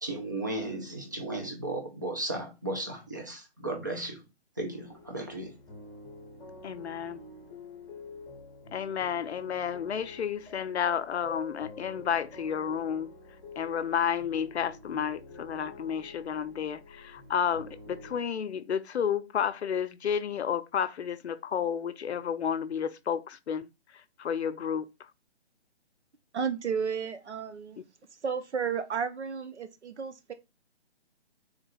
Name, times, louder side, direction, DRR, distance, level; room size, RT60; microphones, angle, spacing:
voice 1, 0.0-4.2 4.6-5.6, right 2 dB, 20° right, 0.4 m, -35 dB
sound 1, 4.7-18.2, left 3 dB, 15° left, 1.0 m, -48 dB
voice 2, 6.6-7.2 8.7-13.1 13.6-23.7 24.2-24.9, left 8 dB, 75° left, 0.5 m, -31 dB
voice 3, 26.3-27.8 28.2-30.3, right 6 dB, 85° right, 0.8 m, -32 dB
3.7 x 2.3 x 4.1 m
figure-of-eight pair, 150°, 33 cm